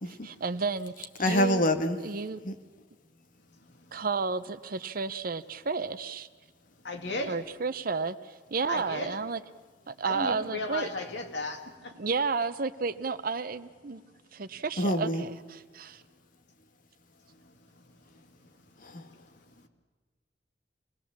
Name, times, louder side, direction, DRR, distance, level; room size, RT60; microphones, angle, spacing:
voice 1, 0.1-1.6 2.0-2.4 3.9-6.3 7.2-9.4 9.9-10.9 12.0-14.0 14.3-16.0, right 4 dB, 55° right, 13 dB, 0.7 m, -32 dB
voice 2, 1.2-2.0 2.4-2.5 14.8-15.2 18.8-19.1, left 1 dB, 50° left, 7 dB, 1.4 m, -26 dB
voice 3, 6.8-7.4 8.7-9.2 10.0-11.9, left 2 dB, 75° left, 4 dB, 2.3 m, -35 dB
25.5 x 19.5 x 7.3 m, 1.4 s
head